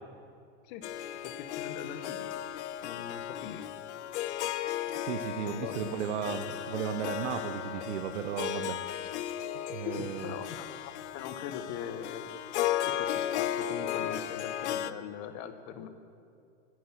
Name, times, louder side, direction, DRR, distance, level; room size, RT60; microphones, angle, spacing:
Harp, 0.8-14.9, left 11 dB, 75° left, 0.7 m, -35 dB
voice 1, 1.2-2.3 2.8-3.6 5.5-5.9 9.8-12.4 12.8-15.9, left 8 dB, 45° left, 9 dB, 1.3 m, -41 dB
voice 2, 4.9-8.8 9.7-10.3, right 9 dB, 80° right, 8 dB, 0.9 m, -35 dB
10.5 x 9.5 x 9.1 m, 2.4 s
supercardioid pair, 135°, 35 cm